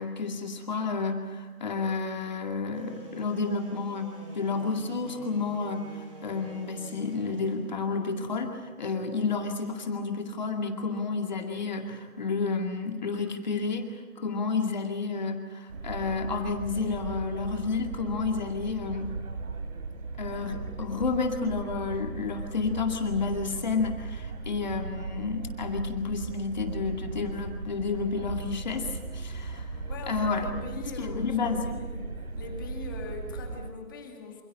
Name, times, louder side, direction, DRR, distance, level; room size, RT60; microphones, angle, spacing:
voice 1, 0.0-13.9 14.2-19.2 20.2-29.7 30.1-30.5 31.0-31.7, left 4 dB, 30° left, 3 dB, 2.2 m, -31 dB
sound 1, 2.7-9.8, right 2 dB, 20° right, 6.8 m, -48 dB
sound 2, 15.7-33.7, right 3 dB, 75° right, 4.0 m, -37 dB
voice 2, 29.9-32.1 32.4-34.4, left 3 dB, 15° left, 2 dB, 2.2 m, -41 dB
27.5 x 27.5 x 5.4 m, 1.3 s
hypercardioid pair, 180°, 45 cm